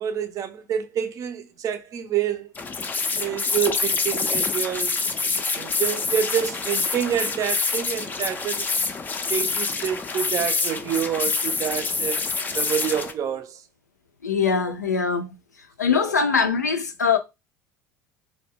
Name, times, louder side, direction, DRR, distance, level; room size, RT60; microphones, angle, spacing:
voice 1, 0.0-2.5 3.1-5.0 5.5-8.7 9.3-12.2 12.5-13.6 15.9-16.1, right 9 dB, 40° right, 0.4 m, -27 dB
sound 1, 2.5-13.1, left 4 dB, 20° left, 0.4 m, -26 dB
voice 2, 14.2-15.3 15.8-17.2, left 5 dB, 85° left, 0.4 m, -22 dB
2.2 x 2.1 x 3.4 m
figure-of-eight pair, 65°, 9 cm